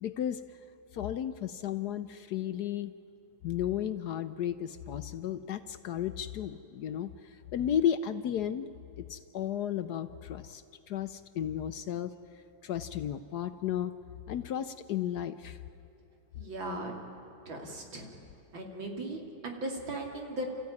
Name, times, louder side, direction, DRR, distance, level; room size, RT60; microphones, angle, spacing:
voice 1, 0.0-0.4 0.9-2.9 3.4-8.7 9.0-10.6 10.9-12.1 12.6-13.9 14.3-15.6, left 10 dB, 65° left, 11 dB, 1.1 m, -33 dB
voice 2, 16.4-16.9 17.5-18.1 18.5-20.5, right 1 dB, 75° right, 1 dB, 3.5 m, -38 dB
29.5 x 14.5 x 9.6 m, 3.0 s
omnidirectional pair, 2.1 m